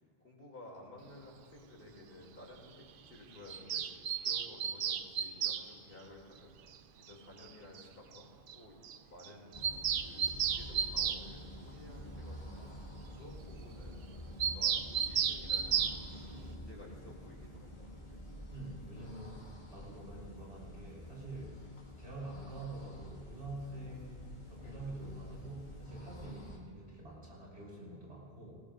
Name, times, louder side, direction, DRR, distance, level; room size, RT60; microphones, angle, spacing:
voice 1, 0.2-2.8 3.1-3.8 4.2-6.5 7.0-8.8 9.1-9.5 10.0-14.0 14.4-17.9, left 1 dB, 65° left, -2 dB, 3.2 m, -54 dB
Bird vocalization bird call bird song, 3.5-5.6 7.1-7.2 7.4-7.5 7.7-7.8 8.1-8.2 8.5-8.6 8.8-9.0 9.2-11.2 14.4-16.0, right 8 dB, 65° right, 0.7 m, -33 dB
sound 1, 9.5-26.6, equal, 45° left, 2.2 m, -48 dB
voice 2, 18.5-21.6 22.0-28.5, right 2 dB, 85° right, -4 dB, 4.6 m, -46 dB
19.0 x 18.5 x 2.6 m, 2.2 s
omnidirectional pair, 1.0 m